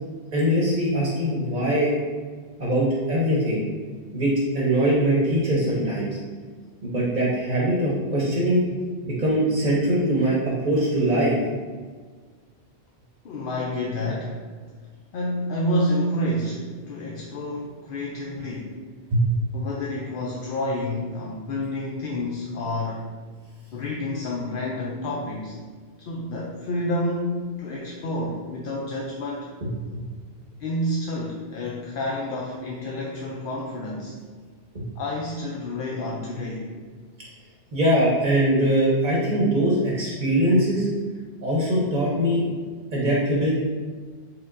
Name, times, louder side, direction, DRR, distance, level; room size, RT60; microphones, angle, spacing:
voice 1, 0.3-1.9 2.6-3.6 4.1-6.1 6.8-8.6 9.0-11.4 19.1-19.2 29.6-30.1 34.7-34.8 37.7-40.9 41.4-42.4 42.9-43.5, right 1 dB, 45° right, -5 dB, 0.9 m, -22 dB
voice 2, 13.2-14.4 15.1-18.8 19.5-23.1 23.7-25.6 26.0-29.5 30.6-34.1 35.0-36.7, left 1 dB, 60° left, -3 dB, 0.6 m, -29 dB
4.7 x 3.6 x 2.5 m, 1.5 s
omnidirectional pair, 1.2 m